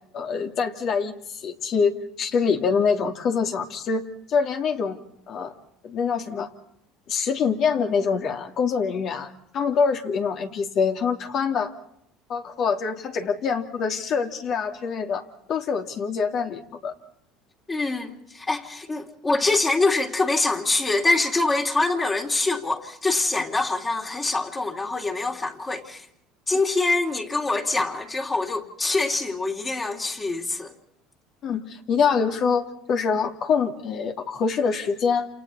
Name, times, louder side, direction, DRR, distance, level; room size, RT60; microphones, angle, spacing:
voice 1, 0.1-5.0 5.3-5.5 5.8-6.5 7.1-11.7 12.3-16.9 31.4-35.3, left 5 dB, 50° left, 2.7 m, -25 dB
voice 2, 17.7-26.1 26.5-30.7, left 3 dB, 20° left, 3.0 m, -24 dB
28.5 x 28.5 x 4.2 m
supercardioid pair, 100°, 0 cm